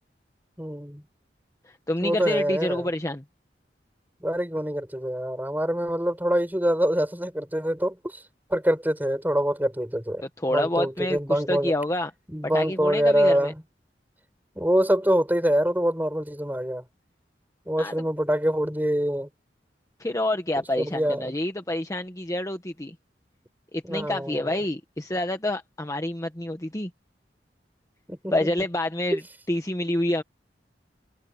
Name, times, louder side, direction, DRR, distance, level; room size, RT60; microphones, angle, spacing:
voice 1, 0.6-1.0 2.0-2.9 4.2-8.2 8.5-10.2 10.5-11.7 12.3-13.6 14.5-16.8 17.7-19.3 20.6-21.3 23.8-24.6 28.1-28.3 29.1-29.2, equal, 10° right, 5.1 m, -25 dB
voice 2, 1.6-3.2 10.4-12.1 12.5-13.5 17.8-17.9 20.0-22.9 23.7-26.9 28.3-29.2 29.5-30.2, left 1 dB, 20° left, 1.1 m, -28 dB
head